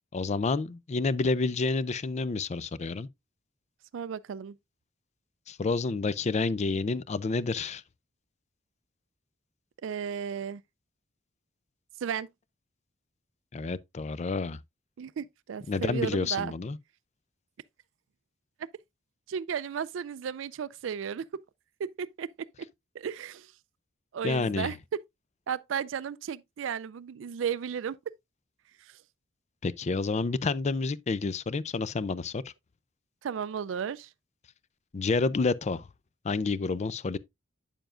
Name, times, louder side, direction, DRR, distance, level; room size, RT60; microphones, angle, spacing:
voice 1, 0.1-3.1 5.5-7.8 13.5-14.6 15.7-16.8 24.2-24.7 29.6-32.5 34.9-35.9 36.2-37.2, left 3 dB, 35° left, 0.4 m, -29 dB
voice 2, 3.9-4.6 9.8-10.6 12.0-12.3 15.0-16.5 19.3-21.2 21.8-22.7 22.9-23.5 24.1-24.8 25.5-28.0 28.8-29.0 33.2-34.1, right 7 dB, 70° right, 0.4 m, -34 dB
8.9 x 7.0 x 2.5 m
head